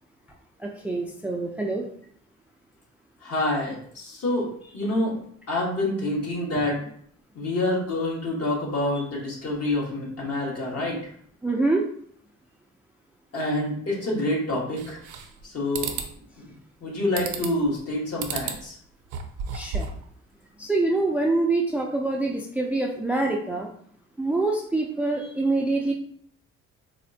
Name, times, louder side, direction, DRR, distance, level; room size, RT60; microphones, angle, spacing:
voice 1, 0.6-1.9 11.4-11.8 19.5-19.9 20.6-23.7 24.2-25.9, right 2 dB, 5° right, 1 dB, 0.3 m, -25 dB
voice 2, 3.2-5.2 5.5-6.8 7.3-11.1 13.3-15.0 15.4-15.9 16.4-16.5 16.8-18.8, left 1 dB, 50° left, -4 dB, 1.5 m, -27 dB
sound 1, 14.8-15.4 15.7-16.1 17.2-17.7 18.2-18.6 19.0-20.0, right 6 dB, 85° right, 0.5 m, -32 dB
4.1 x 2.1 x 2.7 m, 0.62 s
cardioid pair, 90°, 30 cm